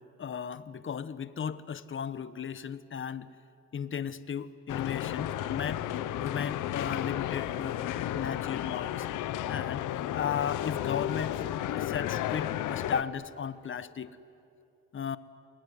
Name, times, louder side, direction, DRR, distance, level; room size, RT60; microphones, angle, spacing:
voice 1, 0.0-3.3 3.7-5.9 6.2-7.8 8.1-9.1 9.5-9.8 10.1-14.2 14.9-15.2, left 7 dB, 40° left, 14 dB, 1.1 m, -35 dB
sound 1, 4.7-13.0, left 12 dB, 90° left, 1.0 m, -33 dB
28.0 x 20.5 x 9.9 m, 2.7 s
cardioid pair, 90°, 30 cm